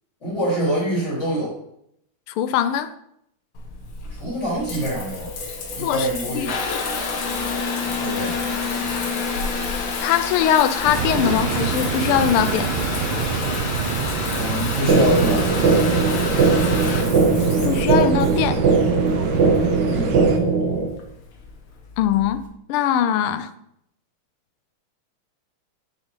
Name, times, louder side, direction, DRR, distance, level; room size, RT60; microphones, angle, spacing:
voice 1, 0.2-1.6 4.1-5.3 5.7-6.5 8.0-8.4 14.3-15.6 19.9-20.2, right 1 dB, 30° left, -6 dB, 4.2 m, -25 dB
voice 2, 2.3-2.9 5.8-6.1 6.3-7.0 10.0-12.7 17.6-18.6 22.0-22.4 22.7-23.5, left 10 dB, 80° left, 11 dB, 1.5 m, -21 dB
Water tap faucet / Bathtub (filling or washing) / Trickle dribble, 3.5-22.4, left 4 dB, 65° left, 1.9 m, -29 dB
sound 1, 10.8-20.4, right 6 dB, 70° right, 1.6 m, -26 dB
sound 2, 14.9-20.9, right 4 dB, 55° right, 2.0 m, -19 dB
6.8 x 6.3 x 5.4 m, 0.74 s
omnidirectional pair, 2.4 m